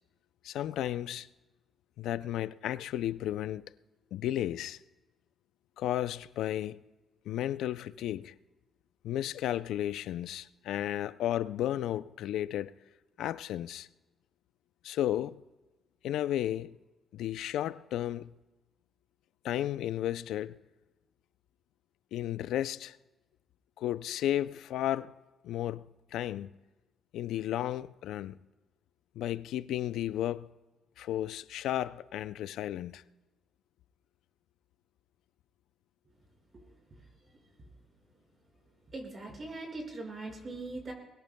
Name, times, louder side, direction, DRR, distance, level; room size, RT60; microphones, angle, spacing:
voice 1, 0.4-1.3 2.0-3.7 4.1-4.8 5.8-6.8 7.3-8.3 9.0-12.7 13.2-13.9 14.8-15.4 16.0-16.8 17.1-18.3 19.4-20.6 22.1-23.0 23.8-25.2 25.4-26.5 27.1-28.4 29.2-30.5 31.0-33.0, left 12 dB, 85° left, 0.4 m, -33 dB
voice 2, 38.9-40.9, right 2 dB, 40° right, 5.3 m, -40 dB
22.5 x 20.0 x 2.2 m
cardioid pair, 90°, 0 cm